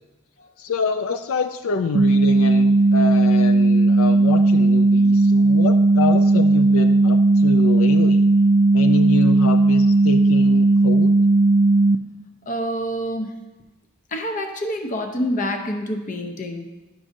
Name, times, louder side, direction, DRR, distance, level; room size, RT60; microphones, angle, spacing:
voice 1, 0.6-8.2 8.7-11.2, left 4 dB, 75° left, 7 dB, 0.4 m, -27 dB
sound 1, 1.9-12.0, right 2 dB, 60° right, 0.3 m, -16 dB
voice 2, 12.5-13.4 14.1-16.6, equal, 35° left, 5 dB, 0.6 m, -27 dB
11.0 x 6.1 x 2.6 m, 1.1 s
head